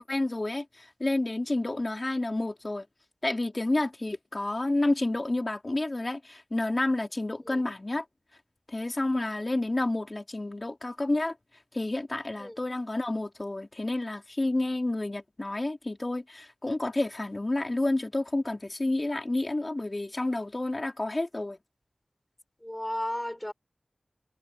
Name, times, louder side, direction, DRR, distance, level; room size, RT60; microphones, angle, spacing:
voice 1, 0.0-2.9 3.2-8.0 8.7-11.3 11.7-21.6, left 2 dB, 40° left, 3.7 m, -30 dB
voice 2, 22.6-23.5, left 1 dB, 15° left, 5.1 m, -34 dB
wide cardioid pair, 50°, 0 cm